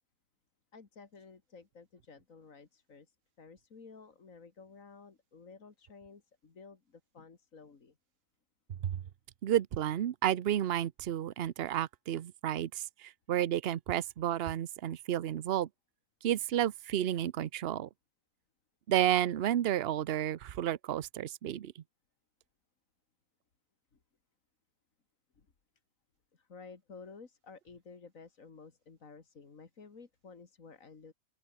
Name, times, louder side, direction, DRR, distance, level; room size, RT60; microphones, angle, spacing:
voice 1, 0.7-8.0 25.4-25.5 26.3-31.1, left 4 dB, 80° left, 2.7 m, -53 dB
voice 2, 9.4-15.7 16.2-17.9 18.9-21.7, right 11 dB, 55° right, 0.9 m, -31 dB
open air
omnidirectional pair, 1.4 m